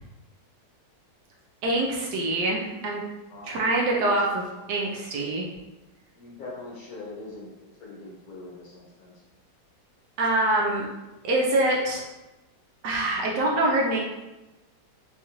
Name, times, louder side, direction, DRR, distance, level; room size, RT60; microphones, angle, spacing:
voice 1, 1.6-3.0 3.5-4.4 4.7-5.5 10.2-10.8 11.2-12.0 12.8-14.0, right 1 dB, 75° right, -2 dB, 1.1 m, -24 dB
voice 2, 6.2-7.5 7.8-9.2, left 3 dB, 60° left, -4 dB, 1.1 m, -42 dB
4.0 x 2.4 x 2.9 m, 1.0 s
omnidirectional pair, 2.0 m